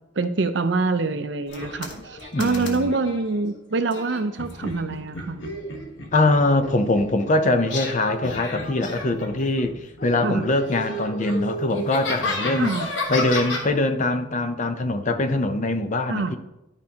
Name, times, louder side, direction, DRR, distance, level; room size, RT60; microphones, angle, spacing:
voice 1, 0.2-5.4 10.2-10.4 12.5-12.9 16.1-16.3, right 3 dB, 65° right, 0.6 m, -25 dB
sound 1, 1.5-3.2 3.9-7.2 7.6-9.7 10.0-13.7, left 2 dB, 75° left, 1.2 m, -32 dB
voice 2, 2.3-2.9 6.1-12.7 13.1-16.4, left 2 dB, 40° left, 0.6 m, -23 dB
11.5 x 5.2 x 2.9 m
head